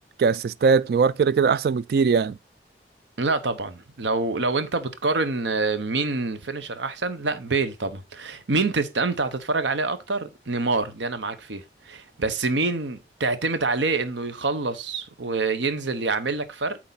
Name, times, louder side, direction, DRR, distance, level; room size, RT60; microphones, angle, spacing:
voice 1, 0.2-2.4, right 5 dB, 60° right, 0.3 m, -20 dB
voice 2, 3.2-16.8, right 3 dB, 85° right, 0.9 m, -26 dB
8.5 x 4.5 x 4.0 m
head